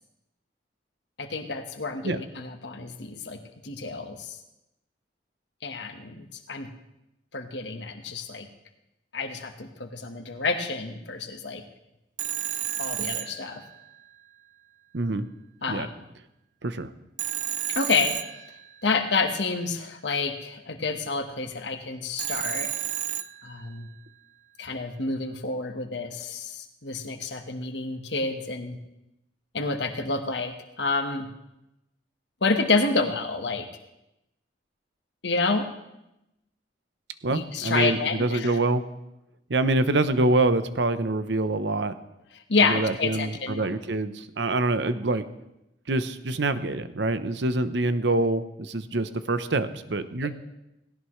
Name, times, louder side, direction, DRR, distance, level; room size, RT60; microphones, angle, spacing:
voice 1, 1.2-4.4 5.6-6.7 7.3-8.5 9.1-11.6 12.8-13.6 15.6-15.9 17.7-18.2 18.8-22.7 23.4-23.9 24.6-28.8 29.5-31.3 32.4-33.7 35.2-35.7 37.3-38.5 42.5-43.7 50.2-50.3, left 4 dB, 70° left, 5 dB, 1.4 m, -28 dB
Telephone, 12.2-14.1 17.2-19.0 22.2-23.9, right 11 dB, 45° right, 0.4 m, -32 dB
voice 2, 14.9-15.2 15.7-15.9 16.6-16.9 37.2-38.8 39.5-41.9 42.6-45.2 45.9-50.3, right 2 dB, 70° right, 11 dB, 0.8 m, -25 dB
18.0 x 17.0 x 3.2 m, 0.89 s
head